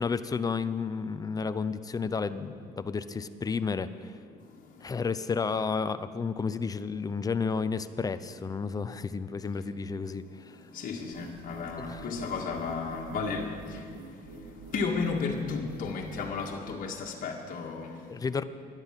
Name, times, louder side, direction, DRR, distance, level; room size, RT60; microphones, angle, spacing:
voice 1, 0.0-4.1 4.8-10.5 11.9-12.0 18.1-18.4, left 5 dB, 20° left, 12 dB, 0.6 m, -31 dB
voice 2, 10.6-18.0, left 4 dB, 55° left, -1 dB, 1.8 m, -34 dB
sound 1, 11.1-16.6, right 4 dB, 85° right, 2.1 m, -47 dB
12.0 x 10.5 x 7.5 m, 2.2 s
cardioid pair, 110°, 17 cm